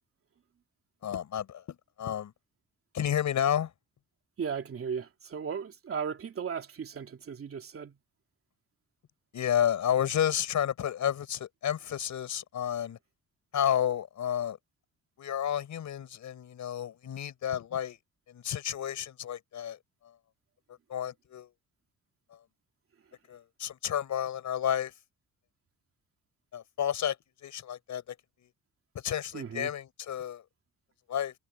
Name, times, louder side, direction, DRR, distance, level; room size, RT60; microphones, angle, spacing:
voice 1, 1.0-2.3 2.9-3.7 9.3-13.0 13.5-14.6 15.2-18.0 18.3-19.8 20.9-21.5 23.3-24.9 26.5-27.2 27.4-28.1 29.0-30.4 31.1-31.3, left 9 dB, 65° left, 4.5 m, -31 dB
voice 2, 4.4-8.0 29.3-29.7, right 6 dB, 45° right, 2.8 m, -36 dB
cardioid pair, 150°, 32 cm